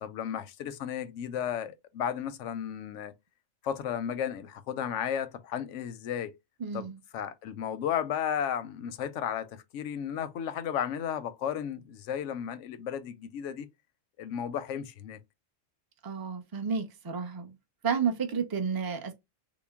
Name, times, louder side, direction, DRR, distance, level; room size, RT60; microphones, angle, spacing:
voice 1, 0.0-3.1 3.6-6.3 6.7-13.7 14.2-15.2, left 9 dB, 90° left, 0.9 m, -34 dB
voice 2, 6.6-7.0 16.0-17.6 17.8-19.1, right 6 dB, 25° right, 0.5 m, -31 dB
3.8 x 2.1 x 3.5 m
omnidirectional pair, 1.2 m